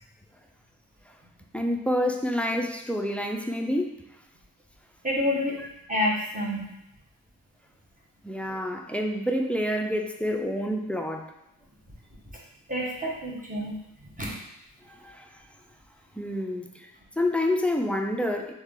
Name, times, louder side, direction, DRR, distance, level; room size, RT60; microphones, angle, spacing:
voice 1, 1.5-4.0 5.6-5.7 8.2-11.3 14.8-15.3 16.2-16.9 17.2-18.5, left 1 dB, 5° left, 3 dB, 0.4 m, -28 dB
voice 2, 5.0-5.6 5.9-6.6 12.7-14.3, left 1 dB, 20° right, -4 dB, 1.2 m, -28 dB
3.6 x 3.5 x 3.6 m, 0.86 s
wide cardioid pair, 100°, 36 cm